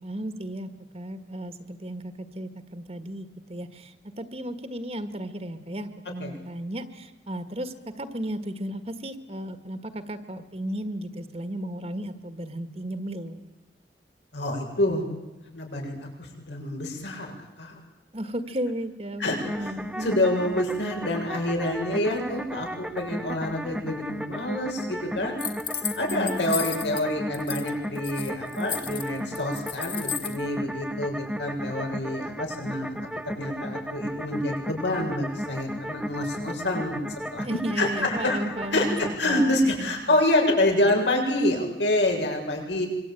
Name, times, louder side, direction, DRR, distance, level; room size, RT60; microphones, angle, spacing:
voice 1, 0.0-13.4 18.1-20.2 26.1-26.7 37.4-39.0 39.2-40.2, right 1 dB, 35° right, 10 dB, 1.6 m, -34 dB
voice 2, 14.3-15.1 15.5-17.8 19.2-19.7 20.0-25.4 26.0-33.0 33.3-37.0 37.3-37.5 37.8-42.9, left 1 dB, 85° left, 1 dB, 7.4 m, -27 dB
sound 1, 19.4-39.2, equal, 5° right, 1.2 m, -35 dB
sound 2, 25.4-27.0 27.3-27.7 28.0-30.4, left 7 dB, 30° left, 2.1 m, -33 dB
26.0 x 23.5 x 9.2 m, 1.0 s
head